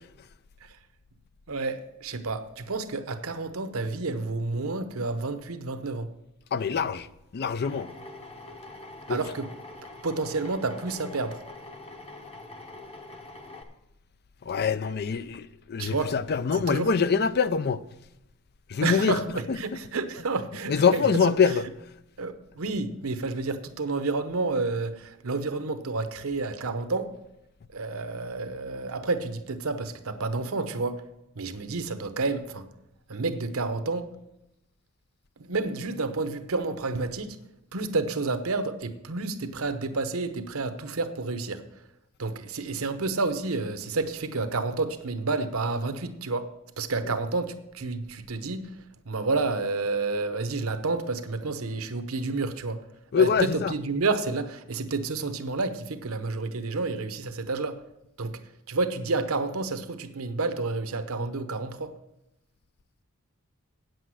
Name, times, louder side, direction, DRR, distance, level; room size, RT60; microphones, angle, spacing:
voice 1, 1.5-6.1 9.1-9.5 10.0-11.4 15.8-16.1 16.5-16.9 18.8-21.3 22.2-27.1 27.7-31.1 31.4-32.7 33.1-34.1 35.4-37.4 37.7-41.6 42.2-46.5 46.8-48.7 49.0-52.8 53.2-57.8 58.2-58.4 58.7-61.9, right 3 dB, 70° right, 0.9 m, -30 dB
voice 2, 6.5-7.1 7.3-7.9 9.1-9.2 14.5-17.8 18.7-19.2 20.7-21.6 53.1-53.7, left 6 dB, 50° left, 0.4 m, -24 dB
Drill, 7.6-13.6, left 2 dB, 30° left, 1.0 m, -44 dB
8.9 x 7.8 x 6.3 m
head